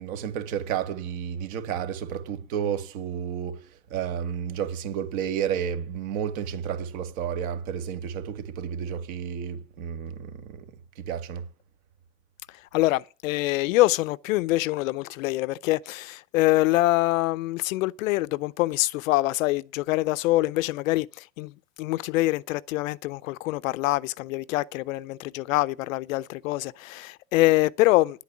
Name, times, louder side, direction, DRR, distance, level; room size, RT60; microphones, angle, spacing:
voice 1, 0.0-10.6 11.0-11.5, right 8 dB, 55° right, 2.1 m, -31 dB
voice 2, 12.5-28.2, left 18 dB, 55° left, 0.5 m, -25 dB
10.5 x 8.5 x 7.0 m
hypercardioid pair, 120°, 48 cm